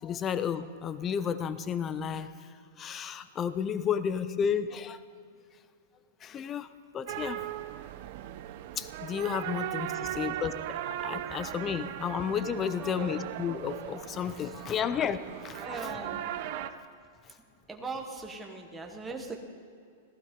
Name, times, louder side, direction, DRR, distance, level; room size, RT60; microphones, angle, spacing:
voice 1, 0.0-2.5 2.8-5.0 6.2-7.5 8.8-15.8, left 7 dB, 15° left, 14 dB, 0.5 m, -32 dB
sound 1, 7.1-16.7, right 12 dB, 35° right, 0.6 m, -38 dB
voice 2, 12.8-13.2 14.7-14.9 15.6-16.3 17.7-19.4, right 3 dB, 5° right, 1 dB, 1.1 m, -40 dB
15.5 x 15.0 x 5.1 m, 2.4 s
supercardioid pair, 175°, 0 cm